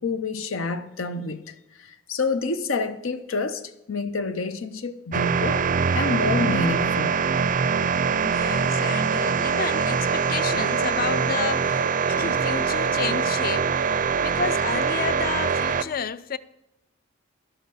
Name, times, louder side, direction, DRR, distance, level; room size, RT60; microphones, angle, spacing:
voice 1, 0.0-7.1, left 3 dB, 85° left, 0.8 m, -28 dB
sound 1, 5.1-15.8, right 6 dB, 40° right, 0.5 m, -23 dB
voice 2, 8.2-16.4, left 6 dB, 45° left, 0.5 m, -31 dB
11.0 x 8.0 x 7.6 m
head